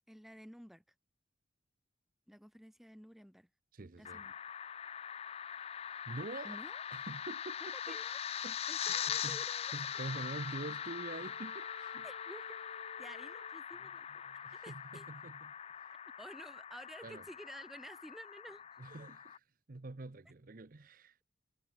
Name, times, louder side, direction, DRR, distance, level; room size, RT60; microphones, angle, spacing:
voice 1, 0.1-0.8 2.3-3.5 3.8-4.4 6.4-6.8 7.8-8.2 8.7-10.0 12.0-12.6 13.0-14.1 14.5-15.1 16.2-18.6, equal, ahead, 5.1 m, -52 dB
voice 2, 3.7-4.2 6.1-6.6 6.9-8.0 8.4-8.6 8.9-9.4 9.7-12.0 14.2-15.9 17.0-17.2 18.8-21.2, right 2 dB, 50° right, 0.8 m, -46 dB
sound 1, 4.0-19.4, left 9 dB, 35° left, 0.4 m, -42 dB
Wind instrument woodwind instrument, 9.9-13.6, left 4 dB, 65° left, 2.3 m, -53 dB
head